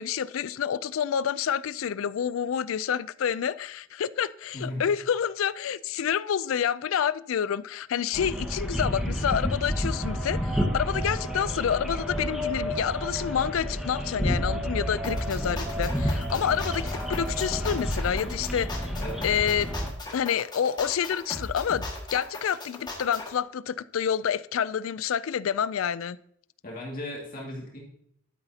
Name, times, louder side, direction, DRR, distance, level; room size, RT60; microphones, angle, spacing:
voice 1, 0.0-18.9 19.2-19.7 20.1-26.2, left 8 dB, 90° left, 0.4 m, -28 dB
voice 2, 4.5-4.8 18.9-19.2 26.6-27.8, left 1 dB, 45° left, 2.1 m, -36 dB
sound 1, 8.1-19.9, equal, ahead, 1.4 m, -30 dB
sound 2, 15.0-23.3, left 2 dB, 20° left, 1.8 m, -37 dB
12.0 x 9.6 x 2.8 m
head